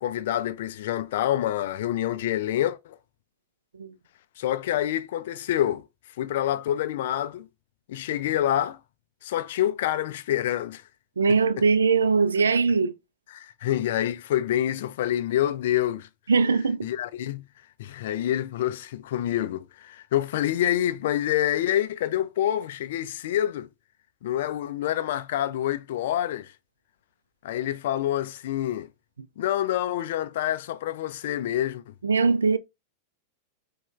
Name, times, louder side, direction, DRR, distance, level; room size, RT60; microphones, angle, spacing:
voice 1, 0.0-3.0 4.4-5.8 6.2-7.5 7.9-8.8 9.2-10.8 11.6-11.7 13.3-16.1 16.8-17.4 17.8-23.7 24.2-26.5 27.4-28.9 29.4-31.9, left 12 dB, 55° left, 0.3 m, -27 dB
voice 2, 11.2-12.9 16.3-16.9 32.0-32.6, right 4 dB, 70° right, 0.4 m, -21 dB
4.8 x 2.2 x 2.4 m
figure-of-eight pair, 90°, 0 cm